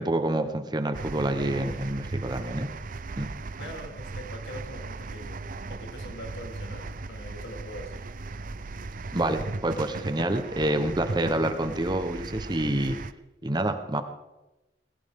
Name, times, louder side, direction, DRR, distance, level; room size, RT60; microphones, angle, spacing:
voice 1, 0.0-2.7 3.2-3.3 9.1-13.0 13.4-14.0, right 1 dB, 25° right, 8 dB, 1.1 m, -27 dB
sound 1, 0.9-13.1, right 3 dB, 50° right, 0.6 m, -37 dB
voice 2, 3.6-5.4 5.7-8.1, equal, 75° left, 1 dB, 3.3 m, -42 dB
20.0 x 17.0 x 3.7 m, 1.0 s
head